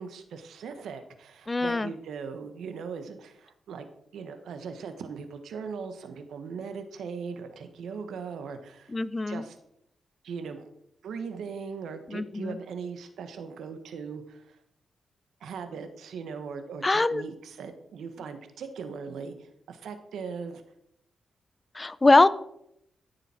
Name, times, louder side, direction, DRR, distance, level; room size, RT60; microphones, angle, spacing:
voice 1, 0.0-3.9 4.1-8.9 9.3-9.6 10.2-10.7 11.0-14.6 15.4-20.6, right 5 dB, 85° right, 9 dB, 1.2 m, -39 dB
voice 2, 1.5-1.9 8.9-9.4 12.1-12.6 16.8-17.2 21.7-22.3, left 2 dB, 25° left, 17 dB, 0.5 m, -22 dB
13.0 x 7.0 x 4.4 m, 0.76 s
cardioid pair, 75°, 0 cm